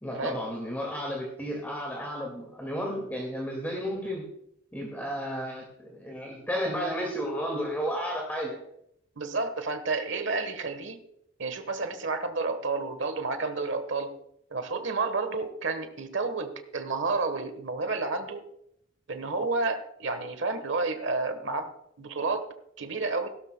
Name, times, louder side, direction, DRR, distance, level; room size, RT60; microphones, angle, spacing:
voice 1, 0.0-4.3 4.7-8.6, equal, 10° left, -1 dB, 2.0 m, -33 dB
voice 2, 9.2-11.0 11.4-14.2 14.5-18.5 19.1-23.3, right 3 dB, 70° right, 9 dB, 1.2 m, -31 dB
16.0 x 13.0 x 2.2 m, 0.76 s
head